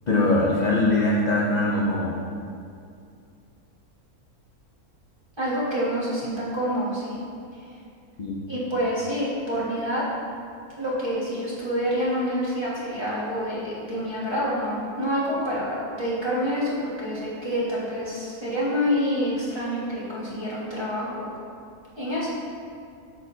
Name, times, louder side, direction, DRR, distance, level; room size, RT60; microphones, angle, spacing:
voice 1, 0.1-2.2 8.2-8.4, left 2 dB, 45° left, -4 dB, 0.6 m, -22 dB
voice 2, 5.4-7.2 8.5-10.0 10.8-21.3 22.0-22.4, equal, 20° right, -8 dB, 1.6 m, -27 dB
8.2 x 6.4 x 2.7 m, 2.4 s
omnidirectional pair, 1.6 m